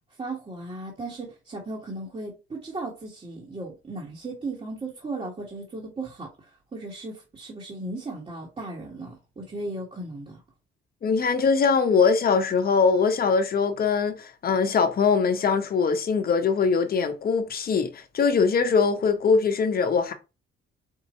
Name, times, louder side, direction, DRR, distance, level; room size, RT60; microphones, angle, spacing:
voice 1, 0.2-10.4, right 2 dB, 30° right, 1.6 m, -36 dB
voice 2, 11.0-20.1, left 5 dB, 50° left, 0.9 m, -22 dB
4.7 x 2.7 x 4.3 m
cardioid pair, 90°, 20 cm